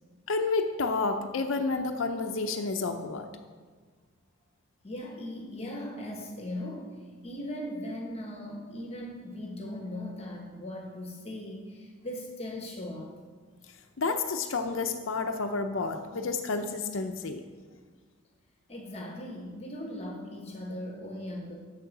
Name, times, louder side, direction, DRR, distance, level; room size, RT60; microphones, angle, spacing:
voice 1, 0.3-3.3 14.0-17.4, left 3 dB, 70° left, 5 dB, 0.6 m, -30 dB
voice 2, 4.8-6.9 7.2-13.1 18.7-21.6, left 1 dB, 30° left, 1 dB, 1.1 m, -38 dB
8.6 x 7.5 x 5.9 m, 1.5 s
head